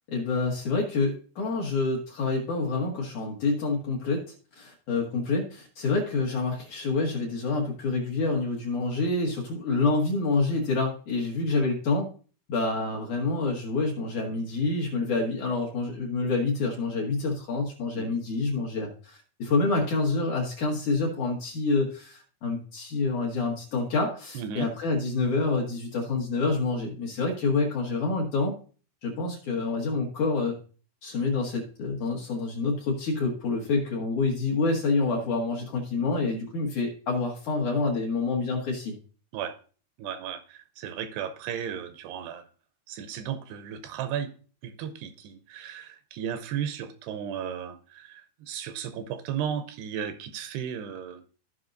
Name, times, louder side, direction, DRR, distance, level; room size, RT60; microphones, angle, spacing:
voice 1, 0.1-4.2 4.6-12.1 12.5-28.5 29.0-30.6 31.0-38.9, left 3 dB, 60° left, -1 dB, 2.2 m, -27 dB
voice 2, 24.3-24.7 39.3-39.6 40.0-42.5 42.9-44.3 44.6-51.3, right 8 dB, 80° right, 10 dB, 2.6 m, -35 dB
15.5 x 5.4 x 2.6 m, 0.40 s
omnidirectional pair, 4.9 m